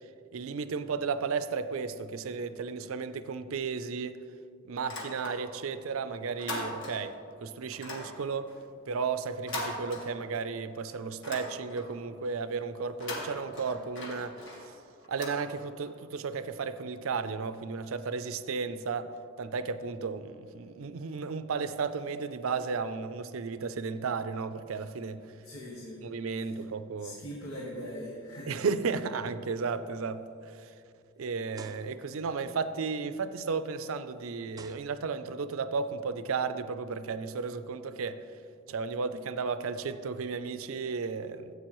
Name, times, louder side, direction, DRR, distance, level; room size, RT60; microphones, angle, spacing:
voice 1, 0.3-4.2 4.7-7.1 7.4-8.5 8.9-14.6 15.1-25.2 26.0-27.2 28.5-30.2 30.6-30.7 31.2-38.2 38.7-41.5, right 5 dB, 80° right, 12 dB, 0.5 m, -34 dB
sound 1, 4.8-5.7 6.0-7.2 7.7-10.6 10.9-12.0 12.8-16.0, left 1 dB, 60° left, 1.7 m, -41 dB
voice 2, 25.4-26.0 26.4-26.6 27.0-28.6, equal, 90° left, -4 dB, 1.6 m, -41 dB
sound 2, 29.4-29.5 30.0-30.1 31.5-32.3 33.7-33.8 34.5-35.4, right 4 dB, 20° right, 0.3 m, -51 dB
14.5 x 8.3 x 3.1 m, 2.5 s
head